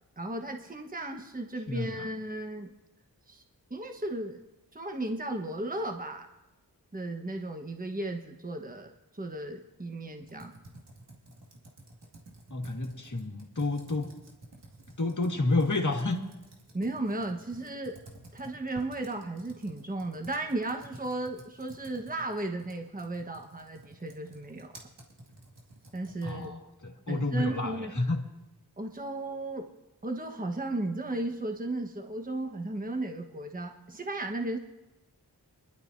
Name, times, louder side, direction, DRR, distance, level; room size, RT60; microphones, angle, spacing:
voice 1, 0.2-2.7 3.3-3.4 3.7-4.4 4.7-6.3 6.9-10.5 16.7-18.0 18.3-24.7 25.9-26.5 27.1-27.9 28.8-29.7 30.0-34.6, right 2 dB, 20° right, 4 dB, 1.2 m, -35 dB
voice 2, 1.7-2.1 12.5-14.1 15.0-16.2 26.2-28.2, left 2 dB, 50° left, 3 dB, 1.8 m, -30 dB
Computer keyboard, 10.2-26.6, right 1 dB, 90° right, 2.3 m, -52 dB
24.0 x 11.5 x 2.7 m, 1.0 s
wide cardioid pair, 50°, 40 cm